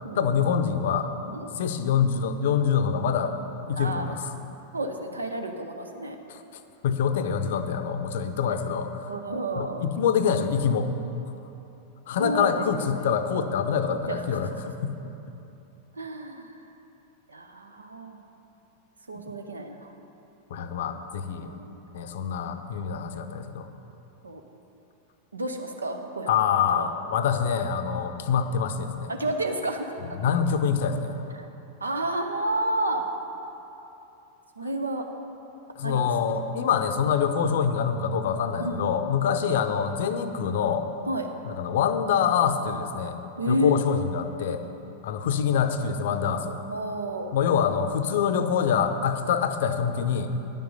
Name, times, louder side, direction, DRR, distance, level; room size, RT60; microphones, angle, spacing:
voice 1, 0.1-1.1 1.6-3.3 3.7-4.3 6.3-6.4 6.8-9.1 9.6-10.9 12.1-15.0 19.1-19.2 20.5-21.5 21.9-23.7 26.3-29.1 30.1-31.2 35.8-40.8 41.4-43.2 43.5-44.6 45.0-46.6 47.3-50.3, left 7 dB, 55° left, 9 dB, 0.6 m, -25 dB
voice 2, 3.7-4.1 4.7-6.2 8.5-8.6 9.1-9.9 12.1-12.5 13.0-13.1 14.1-14.5 15.9-16.5 17.3-18.2 19.1-19.9 20.6-20.9 21.4-21.8 24.2-24.4 25.3-26.9 29.1-29.9 31.4-31.5 31.8-33.1 34.6-35.1 35.8-36.0 38.6-38.9 41.1-41.3 43.4-43.8 44.6-44.7 46.7-47.3, right 1 dB, 80° right, 5 dB, 0.7 m, -31 dB
10.5 x 7.6 x 5.4 m, 3.0 s
figure-of-eight pair, 90°, 0 cm